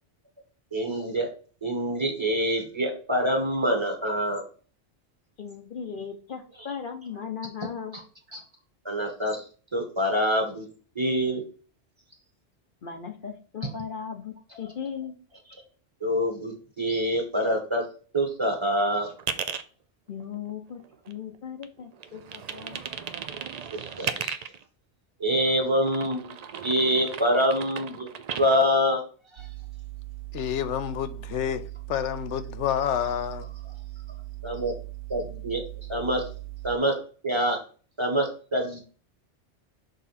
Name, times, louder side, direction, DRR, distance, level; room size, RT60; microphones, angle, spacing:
voice 1, 0.7-1.3 1.6-4.4 8.3-8.4 8.8-9.4 9.7-10.7 10.9-11.4 16.0-17.8 18.1-19.1 23.7-24.3 25.2-26.2 26.6-28.1 28.3-29.0 29.4-29.5 34.4-34.7 35.1-35.6 35.9-36.2 36.6-36.9 37.2-37.6 38.0-38.8, equal, 25° right, 1.4 m, -25 dB
voice 2, 5.4-8.0 12.8-15.1 20.1-20.8 21.1-22.8, left 7 dB, 50° left, 0.9 m, -37 dB
sound 1, 19.2-19.6 20.2-21.4 21.6-24.6 25.4-28.6, right 7 dB, 55° right, 0.4 m, -36 dB
sound 2, 29.4-36.8, right 19 dB, 85° right, 0.9 m, -39 dB
voice 3, 30.3-31.6 31.9-33.5, left 10 dB, 85° left, 1.0 m, -28 dB
6.7 x 3.7 x 4.1 m
omnidirectional pair, 1.2 m